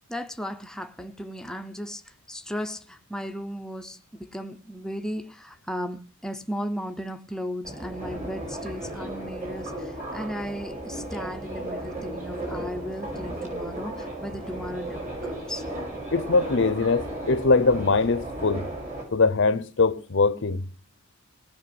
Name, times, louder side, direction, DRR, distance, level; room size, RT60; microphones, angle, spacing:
voice 1, 0.1-15.7, equal, 5° left, 0.8 m, -36 dB
Subway metro underground, 7.6-19.0, right 1 dB, 35° right, 6.3 m, -35 dB
voice 2, 16.1-18.7 19.1-20.6, left 3 dB, 60° left, 0.8 m, -22 dB
18.5 x 6.1 x 7.8 m
head